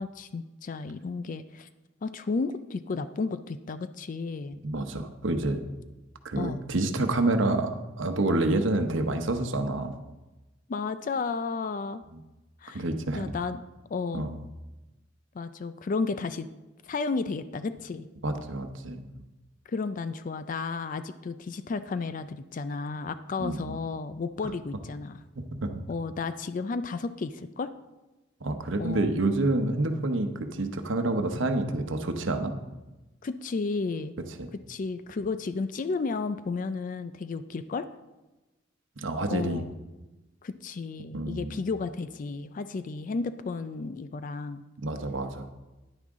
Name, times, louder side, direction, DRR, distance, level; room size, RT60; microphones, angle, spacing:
voice 1, 0.0-1.7 2.0-4.6 6.4-6.6 10.7-12.0 12.6-12.8 13.1-13.6 13.9-14.3 15.3-16.5 16.8-18.1 19.7-25.2 25.9-27.7 28.8-29.1 33.2-34.1 34.7-37.9 39.3-39.7 40.4-44.6, left 4 dB, 40° left, 12 dB, 0.4 m, -33 dB
voice 2, 4.6-5.6 6.2-10.0 12.7-13.3 14.1-14.4 18.2-19.0 23.4-23.8 25.4-25.8 28.4-32.5 34.4-34.5 39.0-39.6 41.1-41.6 44.8-45.5, right 2 dB, 70° right, 7 dB, 0.9 m, -28 dB
10.0 x 9.8 x 3.7 m, 1.1 s
head